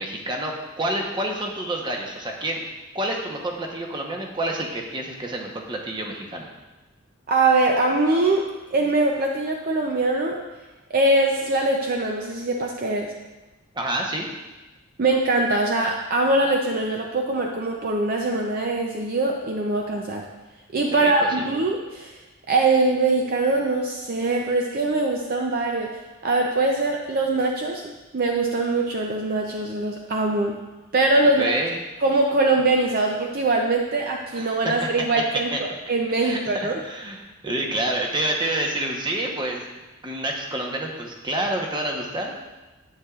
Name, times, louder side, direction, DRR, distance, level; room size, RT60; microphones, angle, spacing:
voice 1, 0.0-2.7 2.9-6.5 13.7-14.3 21.0-21.5 31.4-31.7 34.3-34.7 35.5-35.6 36.2-39.6 40.0-42.5, right 1 dB, 20° right, 0 dB, 1.0 m, -28 dB
voice 2, 7.3-8.4 8.7-10.4 10.9-13.1 15.0-20.2 20.7-22.1 22.5-25.9 26.2-30.5 30.9-31.5 32.0-35.5 35.9-36.8, right 2 dB, 45° right, 1 dB, 0.5 m, -22 dB
9.6 x 8.3 x 2.4 m, 1.1 s
head